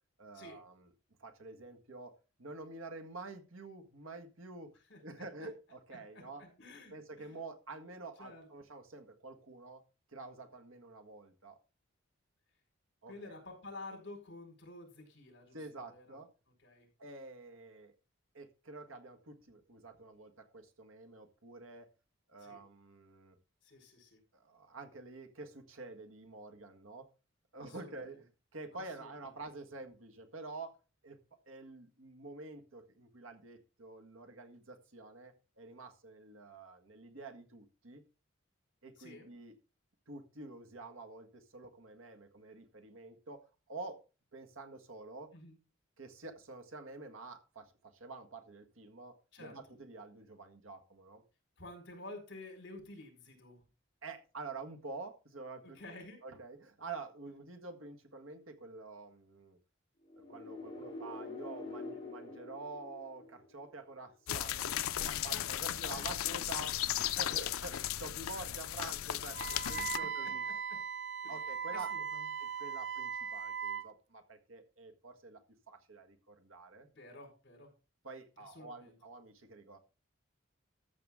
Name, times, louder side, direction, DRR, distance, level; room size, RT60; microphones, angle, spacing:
voice 1, 0.2-0.9 1.2-2.1 2.4-4.7 5.0-6.4 6.9-9.8 10.1-11.6 13.0-13.4 15.5-16.3 17.0-17.9 18.3-21.9 22.3-23.4 24.3-27.1 27.5-28.2 28.5-30.8 31.0-31.2 31.5-38.0 38.8-39.5 40.1-43.4 43.7-44.0 44.3-45.3 46.0-51.2 54.0-55.8 56.2-59.6 60.3-70.4 71.3-71.9 72.4-75.4 75.7-76.9 78.0-79.8, right 3 dB, 80° right, 6 dB, 1.7 m, -48 dB
voice 2, 6.1-7.3 8.2-8.5 13.1-16.2 16.6-16.9 22.4-22.6 23.6-24.2 27.6-28.2 28.7-29.1 39.0-39.3 45.3-45.6 49.3-49.6 51.6-53.6 55.6-56.2 65.2-66.0 69.6-70.8 71.2-71.4 71.7-72.3 76.8-77.7 78.4-79.0, left 2 dB, 55° left, 2 dB, 4.8 m, -51 dB
sound 1, 60.1-63.9, left 3 dB, 25° left, 3.6 m, -46 dB
sound 2, 64.3-70.0, left 11 dB, 90° left, 0.5 m, -36 dB
Wind instrument woodwind instrument, 69.3-73.9, right 6 dB, 55° right, 0.7 m, -39 dB
13.5 x 7.1 x 3.7 m, 0.33 s
head